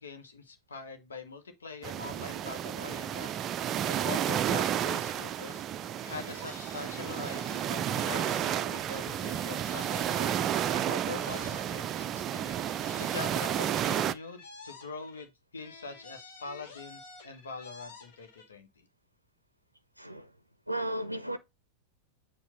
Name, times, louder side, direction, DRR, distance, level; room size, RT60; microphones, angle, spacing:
voice 1, 0.0-3.4 3.9-12.5 13.0-18.9, left 4 dB, 70° left, 1.3 m, -43 dB
sound 1, 1.8-14.1, right 10 dB, 30° right, 0.4 m, -32 dB
sound 2, 6.0-8.9 9.2-12.1 12.4-15.3 15.6-18.5, left 3 dB, 55° left, 1.9 m, -50 dB
voice 2, 20.0-20.3 20.7-21.4, right 1 dB, 90° right, 0.5 m, -34 dB
7.3 x 2.7 x 5.1 m
figure-of-eight pair, 90°, 0 cm